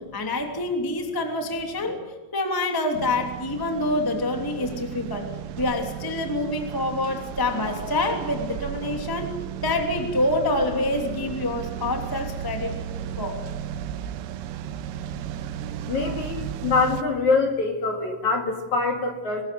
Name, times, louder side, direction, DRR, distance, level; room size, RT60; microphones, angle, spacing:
voice 1, 0.0-2.0 2.3-9.3 9.6-12.8 13.2-13.4, left 2 dB, 5° left, 3 dB, 1.6 m, -26 dB
sound 1, 2.9-17.0, right 10 dB, 85° right, 3.7 m, -34 dB
voice 2, 15.9-19.4, left 4 dB, 45° left, 3 dB, 3.1 m, -24 dB
25.0 x 21.0 x 7.8 m, 1.2 s
omnidirectional pair, 5.7 m